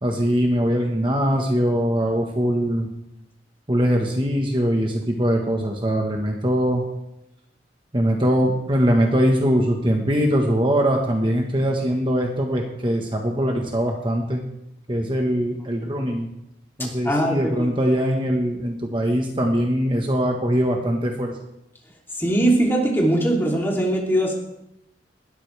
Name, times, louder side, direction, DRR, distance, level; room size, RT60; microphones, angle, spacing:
voice 1, 0.0-2.9 3.7-6.8 7.9-14.4 14.9-16.3 16.8-21.3, equal, 30° right, 1 dB, 1.4 m, -22 dB
voice 2, 16.8-17.7 22.2-24.3, right 1 dB, 15° left, -2 dB, 3.1 m, -21 dB
20.0 x 13.0 x 3.5 m, 0.85 s
head